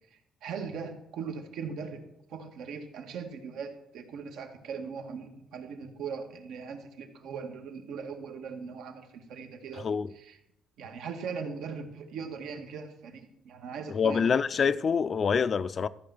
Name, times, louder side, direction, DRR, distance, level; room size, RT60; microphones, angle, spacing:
voice 1, 0.1-2.0 2.3-10.4 10.8-14.7, right 5 dB, 80° right, 1.9 m, -40 dB
voice 2, 9.8-10.1 13.9-15.9, left 6 dB, 40° left, 0.5 m, -26 dB
14.0 x 5.9 x 7.9 m
cardioid pair, 130°, 0 cm